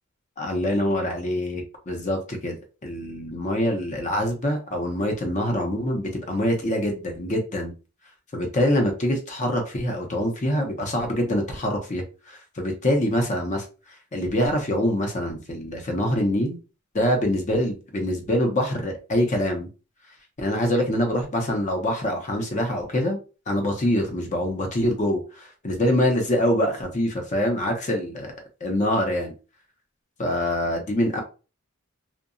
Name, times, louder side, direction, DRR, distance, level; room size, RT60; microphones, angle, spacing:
voice 1, 0.4-2.6 2.8-7.7 8.3-13.6 14.1-16.6 16.9-19.7 20.4-23.2 23.5-29.3 30.2-31.2, left 1 dB, 35° left, 3 dB, 0.6 m, -25 dB
2.7 x 2.1 x 2.5 m, 0.33 s
head